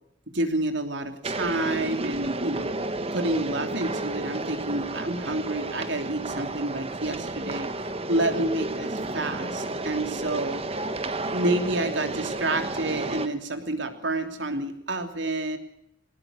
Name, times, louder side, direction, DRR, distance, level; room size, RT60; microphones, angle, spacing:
voice 1, 0.3-2.7 3.1-10.6 11.3-15.6, right 2 dB, 65° right, 7 dB, 3.0 m, -29 dB
sound 1, 1.2-13.3, right 2 dB, 30° right, 1.5 m, -32 dB
22.0 x 20.0 x 6.5 m, 0.73 s
head